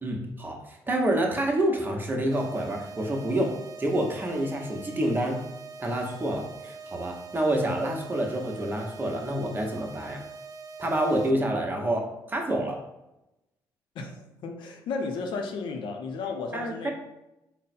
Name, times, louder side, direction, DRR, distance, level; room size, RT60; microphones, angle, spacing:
voice 1, 0.0-5.4 5.8-10.2 10.8-12.8 16.5-16.9, right 1 dB, 25° right, 0.9 m, -28 dB
sound 1, 2.3-11.3, right 4 dB, 45° right, 0.4 m, -43 dB
voice 2, 13.9-16.9, left 4 dB, 75° left, 0.6 m, -34 dB
3.7 x 2.1 x 4.2 m
cardioid pair, 75°, 8 cm